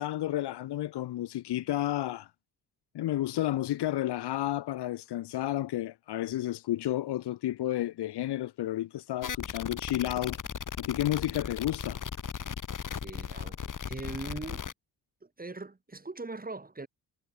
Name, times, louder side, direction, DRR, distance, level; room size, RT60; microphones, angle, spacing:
voice 1, 0.0-2.3 2.9-10.4 10.8-12.0, left 14 dB, 75° left, 3.4 m, -31 dB
sound 1, 9.2-14.7, left 7 dB, 50° left, 3.9 m, -37 dB
voice 2, 13.0-14.6 15.2-16.9, right 3 dB, 20° right, 4.8 m, -41 dB
supercardioid pair, 60°, 40 cm